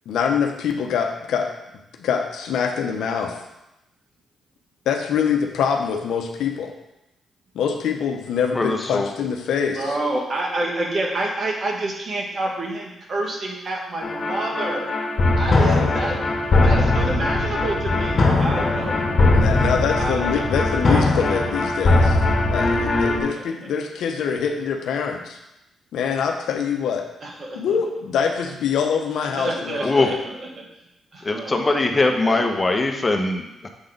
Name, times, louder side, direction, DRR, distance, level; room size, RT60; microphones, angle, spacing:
voice 1, 0.1-1.5 2.0-3.4 4.9-6.7 7.5-9.9 15.6-15.9 19.3-22.2 22.5-25.4 25.9-27.0 27.5-30.2, left 7 dB, 80° left, 4 dB, 0.8 m, -24 dB
voice 2, 8.5-9.1 29.8-30.1 31.2-33.7, left 2 dB, 30° left, 4 dB, 1.1 m, -21 dB
voice 3, 9.8-14.9 15.4-16.2 16.6-19.2 20.0-20.5 20.9-21.4 22.6-23.3 27.2-27.8 29.2-30.7 31.1-31.8 32.2-32.5, right 2 dB, 50° right, 0 dB, 1.7 m, -29 dB
sound 1, 14.0-23.2, left 2 dB, 50° left, 1.5 m, -20 dB
7.1 x 3.8 x 5.2 m, 0.90 s
supercardioid pair, 55°, 0 cm